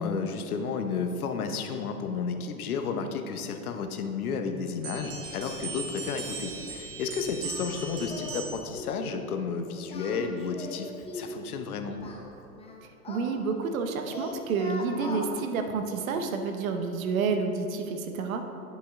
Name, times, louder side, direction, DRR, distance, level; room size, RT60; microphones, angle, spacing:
voice 1, 0.0-12.0, left 5 dB, 80° left, 6 dB, 0.9 m, -32 dB
sound 1, 4.8-8.8, right 4 dB, 50° right, 1.5 m, -38 dB
Singing, 7.4-7.8 8.1-8.5 8.7-9.0 9.8-11.4 12.0-13.8 14.0-15.3, left 2 dB, 15° left, 0.9 m, -40 dB
voice 2, 13.1-18.4, right 4 dB, 65° right, 6 dB, 1.0 m, -29 dB
10.0 x 5.7 x 3.6 m, 2.9 s
hypercardioid pair, 110°, 44 cm